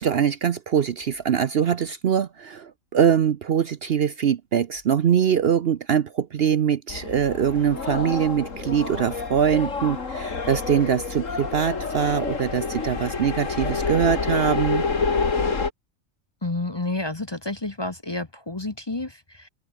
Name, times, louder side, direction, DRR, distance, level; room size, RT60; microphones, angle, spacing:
voice 1, 0.0-14.8, right 8 dB, 55° right, 0.8 m, -23 dB
sound 1, 6.9-15.7, left 4 dB, 70° left, 2.7 m, -28 dB
voice 2, 16.4-19.5, left 2 dB, 20° left, 1.0 m, -30 dB
omnidirectional pair, 1.4 m